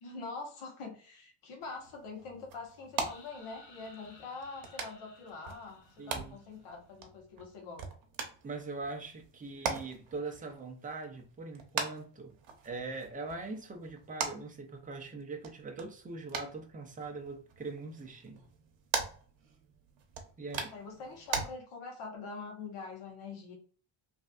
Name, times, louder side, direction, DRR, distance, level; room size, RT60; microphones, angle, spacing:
voice 1, 0.0-7.8 20.5-23.6, left 4 dB, 85° left, 1.3 m, -44 dB
sound 1, 1.6-21.4, right 5 dB, 65° right, 0.9 m, -42 dB
sound 2, 3.0-6.8, left 3 dB, 50° left, 0.7 m, -58 dB
voice 2, 6.0-6.4 8.4-12.3 12.6-18.4 20.4-20.7, right 3 dB, 15° right, 0.5 m, -42 dB
3.2 x 2.6 x 2.4 m
cardioid pair, 160°, 49 cm